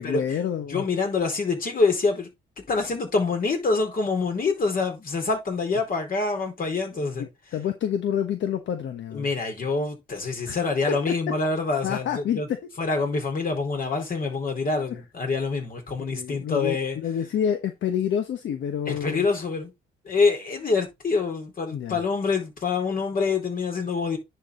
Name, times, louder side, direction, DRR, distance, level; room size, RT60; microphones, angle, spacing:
voice 1, 0.0-0.8 7.2-9.3 10.4-10.6 10.9-11.4 11.8-12.6 14.9-15.0 16.1-19.3 21.7-22.0, left 9 dB, 70° left, 1.1 m, -28 dB
voice 2, 0.7-2.3 2.7-7.3 9.1-12.5 12.8-17.0 18.9-19.7 20.0-24.2, left 4 dB, 45° left, 4.4 m, -26 dB
10.5 x 4.7 x 3.8 m
cardioid pair, 90°, 20 cm